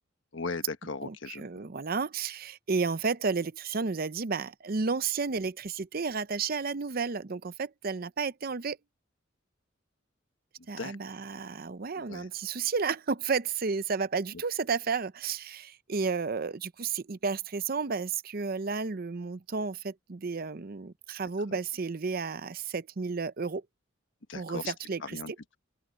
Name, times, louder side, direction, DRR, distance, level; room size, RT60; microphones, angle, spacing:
voice 1, 0.3-1.5 10.8-11.0 12.1-12.3 24.3-24.7 25.0-25.6, left 4 dB, 70° left, 1.3 m, -37 dB
voice 2, 1.0-8.8 10.7-23.6 24.3-25.2, right 5 dB, 50° right, 0.6 m, -32 dB
open air
head